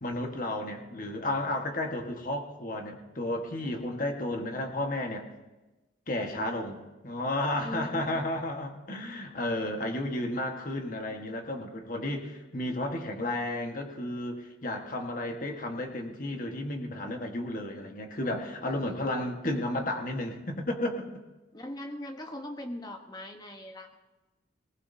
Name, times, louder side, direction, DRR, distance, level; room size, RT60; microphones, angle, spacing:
voice 1, 0.0-5.3 6.1-6.8 7.0-21.1, left 1 dB, 45° left, 3 dB, 1.4 m, -32 dB
voice 2, 7.6-8.3 18.6-19.3 21.5-24.0, left 1 dB, 20° left, 5 dB, 1.0 m, -41 dB
19.5 x 19.0 x 2.7 m, 1.1 s
head